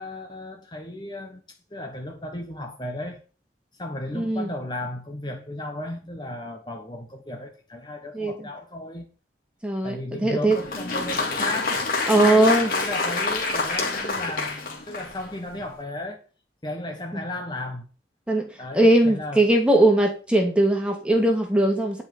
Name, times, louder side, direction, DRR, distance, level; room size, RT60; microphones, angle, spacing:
voice 1, 0.0-1.4 1.7-3.2 3.8-9.1 9.8-11.8 12.1-16.2 16.6-17.9 18.6-19.4, left 1 dB, 25° left, 1.5 m, -34 dB
voice 2, 4.1-4.5 8.1-8.3 9.6-10.6 12.1-12.7 17.1-17.2 18.3-18.5 18.7-22.0, right 1 dB, 5° right, 2.4 m, -20 dB
Applause, 10.5-15.3, left 3 dB, 50° left, 2.8 m, -27 dB
11.0 x 5.6 x 7.1 m
head